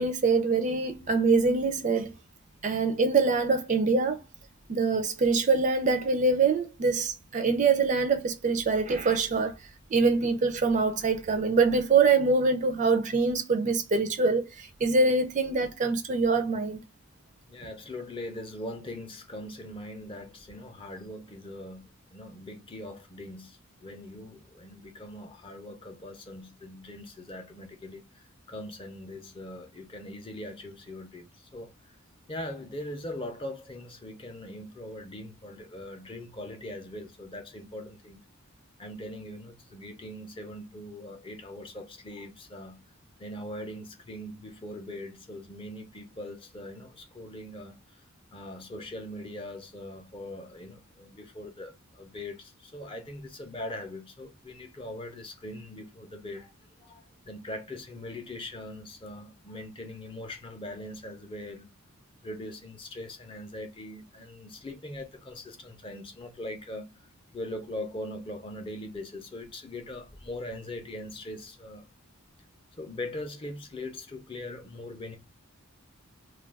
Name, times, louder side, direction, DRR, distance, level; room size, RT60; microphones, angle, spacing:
voice 1, 0.0-2.1 2.6-4.2 4.7-9.6 9.9-16.8, right 4 dB, 35° right, 0.4 m, -24 dB
voice 2, 17.5-31.7 32.3-38.2 38.8-42.8 43.2-47.8 48.3-56.5 56.8-61.7 62.2-66.9 67.3-71.8 72.8-75.2, left 1 dB, 25° left, 0.5 m, -41 dB
2.3 x 2.2 x 3.3 m
head